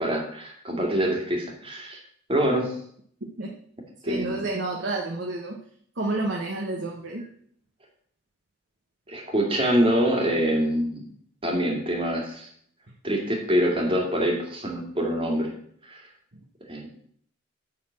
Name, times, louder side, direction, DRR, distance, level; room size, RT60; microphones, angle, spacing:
voice 1, 0.0-2.0 2.3-2.7 4.0-4.4 9.1-11.0 11.4-12.5 13.0-15.5 15.8-16.1 16.7-16.9, equal, 25° right, 0 dB, 2.2 m, -25 dB
voice 2, 4.0-5.6 6.0-7.3, right 2 dB, 60° right, 0 dB, 1.2 m, -29 dB
9.7 x 4.3 x 7.5 m, 0.63 s
head